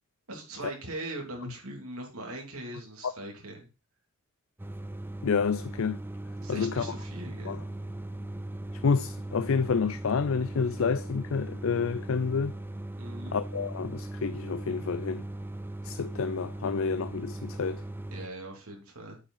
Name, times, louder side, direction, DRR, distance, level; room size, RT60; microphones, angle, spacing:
voice 1, 0.3-3.7 6.4-7.6 13.0-13.4 18.1-19.2, right 2 dB, 75° right, 3.1 m, -40 dB
sound 1, 4.6-18.3, right 1 dB, 10° right, 0.4 m, -39 dB
voice 2, 5.2-6.0 6.5-6.9 7.5-7.6 8.8-12.5 13.3-15.2 15.8-17.8, left 5 dB, 65° left, 0.4 m, -29 dB
8.4 x 5.2 x 5.6 m
head